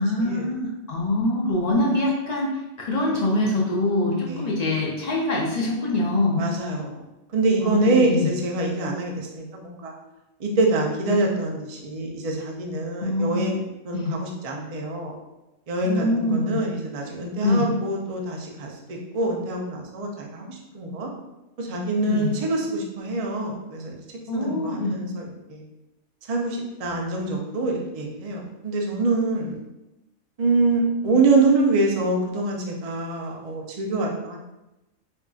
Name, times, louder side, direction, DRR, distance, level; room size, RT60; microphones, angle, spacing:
voice 1, 0.0-2.5 2.8-6.4 7.6-8.3 13.0-13.4 13.9-14.1 15.8-16.6 17.4-17.6 22.1-22.3 24.3-25.0, left 2 dB, 50° left, -3 dB, 0.5 m, -24 dB
voice 2, 6.4-7.0 7.3-9.9 10.4-13.6 13.8-15.1 15.7-21.1 21.6-24.0 24.3-25.6 26.3-29.5 30.4-34.4, right 2 dB, 70° right, 0 dB, 0.3 m, -25 dB
4.7 x 2.5 x 2.3 m, 0.96 s
omnidirectional pair, 1.4 m